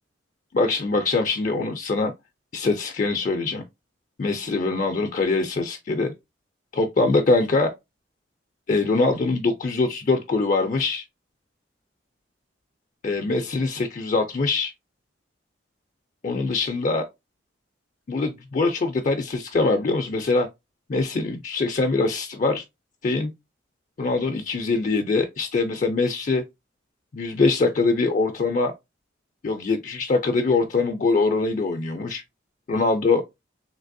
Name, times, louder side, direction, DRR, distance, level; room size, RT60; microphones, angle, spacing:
voice 1, 0.5-2.1 2.5-3.6 4.2-6.1 6.7-7.7 8.7-11.0 13.0-14.7 16.2-17.0 18.1-20.5 20.9-22.6 23.0-23.3 24.0-26.4 27.1-28.7 29.4-32.2 32.7-33.2, left 3 dB, 40° left, 0.4 m, -23 dB
3.2 x 2.8 x 2.6 m
head